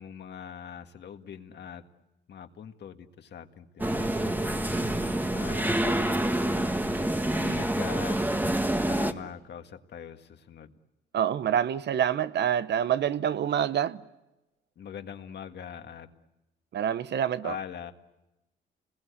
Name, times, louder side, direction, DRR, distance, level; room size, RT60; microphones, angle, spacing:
voice 1, 0.0-1.8 2.3-4.8 5.3-5.8 7.3-8.2 8.9-10.7 14.8-16.1 17.4-17.9, left 8 dB, 60° left, 1.7 m, -42 dB
sound 1, 3.8-9.1, right 1 dB, 10° right, 1.4 m, -27 dB
voice 2, 11.1-14.0 16.7-17.6, right 9 dB, 60° right, 0.8 m, -26 dB
29.0 x 21.0 x 8.2 m
cardioid pair, 90°, 20 cm